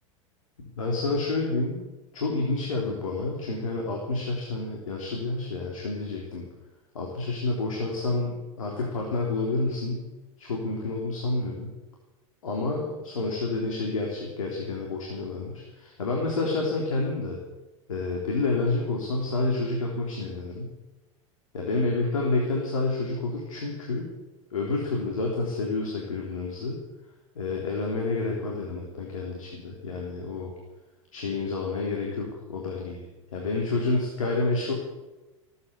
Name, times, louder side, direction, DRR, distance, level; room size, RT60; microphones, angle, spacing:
voice 1, 0.8-1.8 2.1-6.4 6.9-10.1 10.4-11.7 12.4-17.4 17.9-20.7 21.5-24.1 24.5-26.8 27.4-30.5 31.1-33.1 33.3-34.7, left 3 dB, 80° left, -1 dB, 3.5 m, -29 dB
18.5 x 9.6 x 8.1 m, 1.1 s
hypercardioid pair, 95°, 17 cm